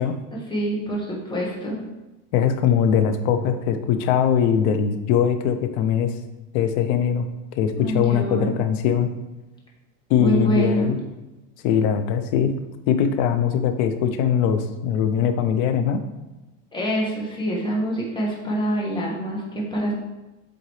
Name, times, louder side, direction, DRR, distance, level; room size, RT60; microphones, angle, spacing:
voice 1, 0.3-1.8 7.7-8.6 10.2-10.9 16.7-19.9, right 1 dB, 10° left, -3 dB, 1.4 m, -25 dB
voice 2, 2.3-6.1 6.5-7.2 7.6-9.1 10.1-11.0 11.6-12.5 12.9-16.0, left 8 dB, 55° left, 9 dB, 0.7 m, -21 dB
7.8 x 3.9 x 3.2 m, 1.1 s
supercardioid pair, 145°, 40 cm